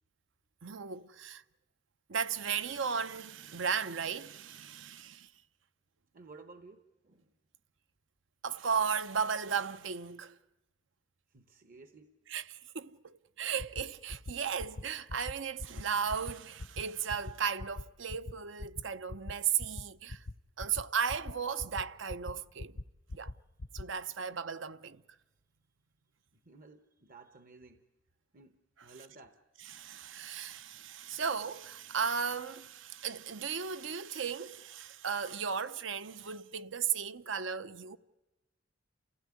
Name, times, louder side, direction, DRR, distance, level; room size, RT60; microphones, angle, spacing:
voice 1, 0.6-1.4 2.1-5.3 8.4-10.4 12.3-12.4 12.7-20.2 20.6-22.8 23.1-23.3 23.7-25.0 29.7-38.0, right 6 dB, 65° right, 0.7 m, -35 dB
voice 2, 6.1-7.3 11.3-12.1 26.3-27.9 28.3-29.4, right 3 dB, 45° right, 1.0 m, -55 dB
sound 1, 13.6-13.8 14.1-14.3 14.6-14.8 15.1-15.3 15.6-15.8 16.1-16.3 16.6-16.8 17.1-17.3 17.6-17.8 18.1-18.3 18.6-18.8 19.1-19.3 19.6-19.8 20.1-20.3 20.6-20.8 21.1-21.3 21.6-21.8 22.1-22.3 22.6-22.8 23.1-23.3 23.6-23.8, left 2 dB, 65° left, 0.8 m, -40 dB
29.0 x 15.5 x 9.6 m
head